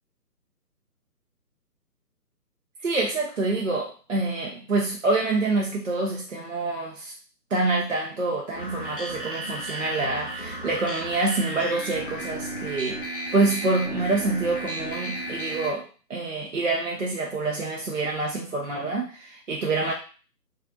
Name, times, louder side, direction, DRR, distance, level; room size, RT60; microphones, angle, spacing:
voice 1, 2.8-7.1 7.5-13.0 13.3-19.9, right 3 dB, 50° right, -2 dB, 0.5 m, -26 dB
sound 1, 8.5-15.7, right 1 dB, 35° left, 0.4 m, -34 dB
2.8 x 2.4 x 2.5 m, 0.36 s
figure-of-eight pair, 145°, 48 cm